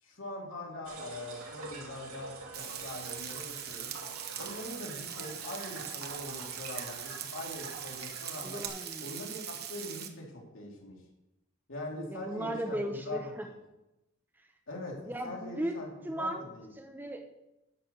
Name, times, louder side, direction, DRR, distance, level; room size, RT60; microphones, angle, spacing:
voice 1, 0.0-3.9 4.4-8.6 9.0-11.0 11.7-12.8 13.0-13.2 14.7-15.9 16.2-16.7, left 1 dB, 65° left, -2 dB, 3.2 m, -42 dB
sound 1, 0.8-8.7, right 3 dB, 80° right, 2.6 m, -46 dB
Frying (food), 2.5-10.1, right 9 dB, 50° right, 1.1 m, -41 dB
voice 2, 8.4-9.1 12.0-13.5 15.0-15.7 16.0-16.4 16.8-17.2, right 1 dB, 10° right, 4 dB, 0.9 m, -36 dB
10.5 x 7.5 x 7.1 m, 0.95 s
head